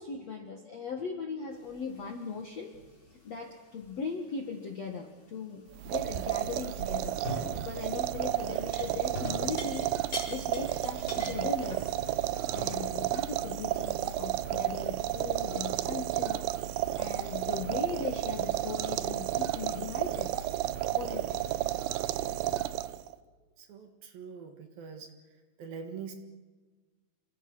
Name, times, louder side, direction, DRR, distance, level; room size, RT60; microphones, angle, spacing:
voice 1, 0.0-2.8 3.2-11.9 12.5-20.3 20.9-21.5, left 5 dB, 55° left, 3 dB, 2.0 m, -39 dB
sound 1, 1.5-2.4 2.7-3.1 3.8-3.9 6.7-6.8 7.2-7.8 8.1-12.9, left 1 dB, 25° left, 4.6 m, -42 dB
sound 2, 5.8-23.2, right 14 dB, 75° right, 2.8 m, -32 dB
voice 2, 23.6-25.1 25.6-26.2, right 6 dB, 60° right, 6 dB, 3.0 m, -43 dB
28.5 x 23.5 x 6.3 m, 1.4 s
omnidirectional pair, 5.4 m